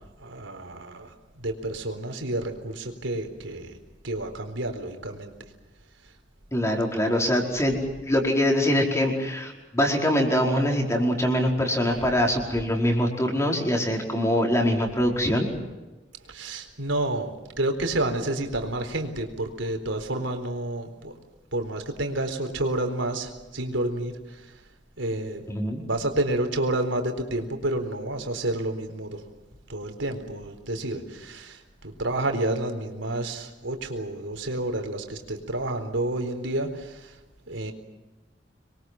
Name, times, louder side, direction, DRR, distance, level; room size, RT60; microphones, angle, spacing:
voice 1, 0.0-3.8 4.0-5.3 16.3-21.2 21.5-24.5 25.0-25.4 25.8-29.2 29.7-37.2 37.5-37.7, right 1 dB, 85° right, 6 dB, 4.2 m, -30 dB
voice 2, 6.5-7.8 8.0-15.5 25.5-25.8, equal, 15° left, 1 dB, 4.8 m, -23 dB
26.5 x 23.0 x 7.7 m, 1.1 s
head